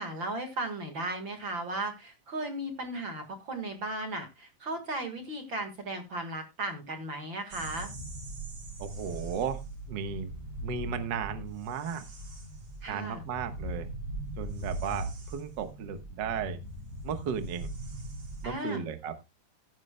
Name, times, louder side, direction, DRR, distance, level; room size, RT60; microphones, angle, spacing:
voice 1, 0.0-7.9 12.8-13.2 18.4-18.8, right 2 dB, 45° right, 5 dB, 1.9 m, -36 dB
sound 1, 7.5-18.5, right 1 dB, 65° right, 4.8 m, -40 dB
voice 2, 8.8-9.6 9.9-10.3 10.6-12.0 12.9-13.9 14.4-16.6 17.0-17.7 18.4-19.1, right 7 dB, 80° right, 9 dB, 1.0 m, -35 dB
16.0 x 9.7 x 2.2 m, 0.24 s
omnidirectional pair, 4.0 m